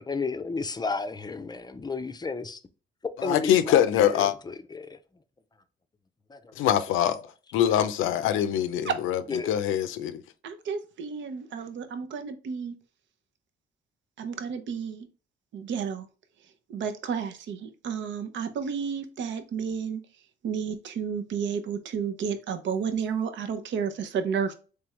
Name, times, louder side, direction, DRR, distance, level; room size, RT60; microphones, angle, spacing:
voice 1, 0.0-2.6 3.2-3.8 4.1-5.0 9.3-9.5, left 4 dB, 20° left, 0.5 m, -32 dB
voice 2, 3.2-4.3 6.6-7.2 7.5-10.2, left 10 dB, 85° left, 0.5 m, -24 dB
voice 3, 10.4-12.7 14.2-15.1 15.5-16.1 16.7-20.0 20.4-24.5, right 6 dB, 70° right, 0.7 m, -31 dB
3.5 x 3.3 x 3.0 m
cardioid pair, 90°, 20 cm